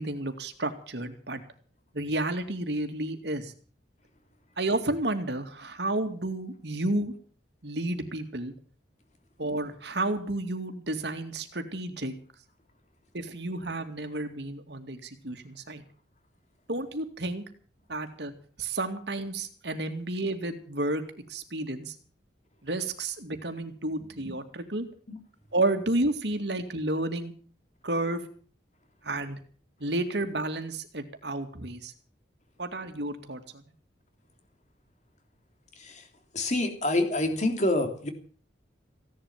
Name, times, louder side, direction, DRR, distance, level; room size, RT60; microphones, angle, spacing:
voice 1, 0.0-1.4 1.9-3.5 4.6-7.1 7.6-8.5 9.4-12.1 13.1-15.8 16.7-17.4 17.9-18.3 18.6-21.0 21.3-22.0 22.6-24.9 25.5-27.3 27.8-28.2 29.0-29.4 29.8-31.9 32.6-33.6, right 2 dB, 65° right, 7 dB, 2.4 m, -31 dB
voice 2, 35.8-36.1 36.3-38.1, left 2 dB, 40° left, 5 dB, 3.2 m, -27 dB
16.5 x 11.0 x 7.4 m, 0.44 s
head